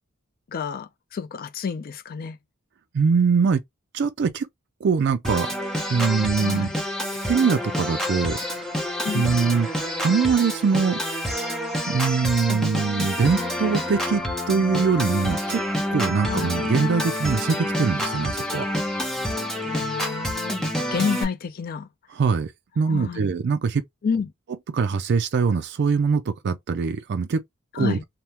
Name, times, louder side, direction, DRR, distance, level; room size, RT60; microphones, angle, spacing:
voice 1, 0.5-2.4 6.4-6.7 9.0-9.4 16.2-16.6 19.6-20.6 20.9-21.9 22.9-23.2 24.0-24.3 27.7-28.0, left 6 dB, 45° left, 0.4 m, -29 dB
voice 2, 2.9-3.6 3.9-4.5 4.8-5.5 5.9-6.7 7.2-8.8 9.1-9.7 10.0-11.0 11.9-15.6 15.9-18.7 22.1-23.8 24.7-27.4 27.8-28.0, right 5 dB, 55° right, 0.4 m, -23 dB
Organ, 5.2-21.2, left 1 dB, 5° left, 0.8 m, -28 dB
3.4 x 2.1 x 2.8 m
head